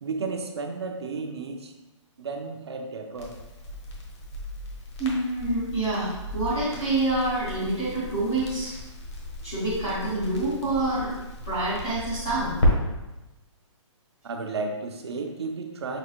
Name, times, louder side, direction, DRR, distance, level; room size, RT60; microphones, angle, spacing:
voice 1, 0.0-1.7 2.2-3.4 14.2-16.0, right 4 dB, 55° right, 4 dB, 0.5 m, -33 dB
Crackle, 3.1-12.7, left 1 dB, 60° left, 1.1 m, -33 dB
voice 2, 5.0-8.7 9.4-11.1 11.4-12.5, right 2 dB, 5° left, -10 dB, 0.3 m, -27 dB
6.1 x 2.6 x 2.9 m, 1.0 s
hypercardioid pair, 175°, 16 cm